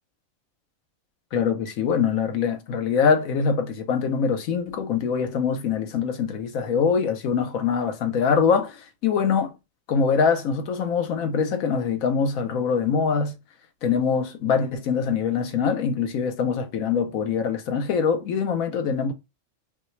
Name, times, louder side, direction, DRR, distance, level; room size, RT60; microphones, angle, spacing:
voice 1, 1.3-9.5 9.9-13.3 13.8-19.1, left 6 dB, 90° left, 1.2 m, -23 dB
5.3 x 2.3 x 3.1 m
omnidirectional pair, 1.4 m